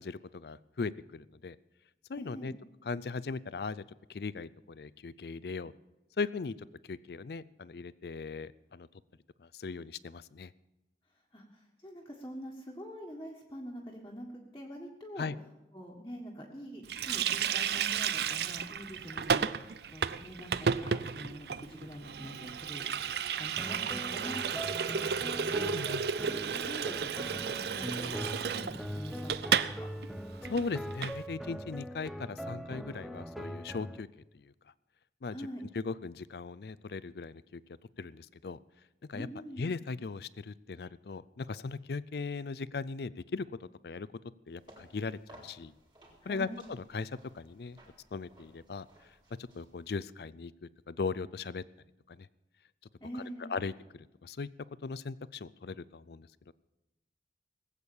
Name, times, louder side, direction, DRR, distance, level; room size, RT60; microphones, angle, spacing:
voice 1, 0.0-1.6 2.1-2.5 2.8-3.8 4.1-5.7 6.2-6.5 6.9-8.9 9.4-10.5 15.2-15.4 25.7-26.0 30.5-34.1 34.3-34.5 35.2-35.5 35.7-37.6 38.0-38.6 39.1-39.3 39.6-44.1 44.5-45.7 46.3-47.8 48.1-48.9 49.4-51.6 52.1-52.3 53.1-54.5 54.8-56.5, left 4 dB, 65° left, 18 dB, 0.4 m, -38 dB
voice 2, 2.2-2.5 11.3-14.3 14.5-15.3 15.7-22.9 23.3-25.7 26.2-26.4 26.7-29.9 35.3-35.6 39.1-39.7 46.2-46.6 53.0-53.6, equal, 20° left, -3 dB, 1.6 m, -45 dB
Water tap faucet, 16.9-29.8 30.0-30.2 30.4-31.2, right 7 dB, 65° right, 0.5 m, -33 dB
sound 1, 23.6-34.0, equal, ahead, 0.5 m, -41 dB
sound 2, 44.5-50.1, right 1 dB, 25° right, 3.8 m, -59 dB
20.0 x 8.3 x 7.1 m, 0.99 s
head